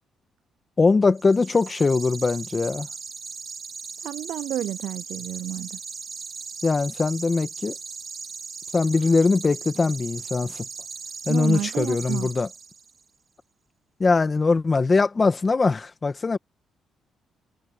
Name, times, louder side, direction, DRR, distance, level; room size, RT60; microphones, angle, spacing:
voice 1, 0.8-2.9 6.6-7.7 8.7-10.6 11.3-12.5 14.0-16.4, left 4 dB, 30° left, 1.5 m, -21 dB
sound 1, 1.2-13.0, right 5 dB, 40° right, 2.5 m, -38 dB
voice 2, 4.0-5.8 11.3-12.3, right 12 dB, 80° right, 0.5 m, -30 dB
cardioid pair, 90°, 0 cm